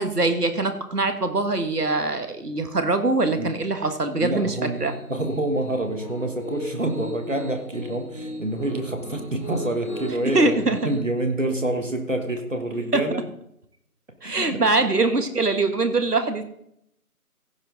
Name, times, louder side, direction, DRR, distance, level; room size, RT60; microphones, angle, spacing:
voice 1, 0.0-4.9 10.3-10.8 12.9-13.0 14.2-16.4, right 2 dB, 80° right, 8 dB, 1.7 m, -23 dB
Piano, 4.1-11.0, equal, 35° left, 2.6 m, -38 dB
voice 2, 4.2-10.5 10.8-13.2 14.2-14.6, right 1 dB, 55° right, 5 dB, 1.6 m, -27 dB
16.0 x 5.9 x 3.9 m, 0.74 s
figure-of-eight pair, 175°, 46 cm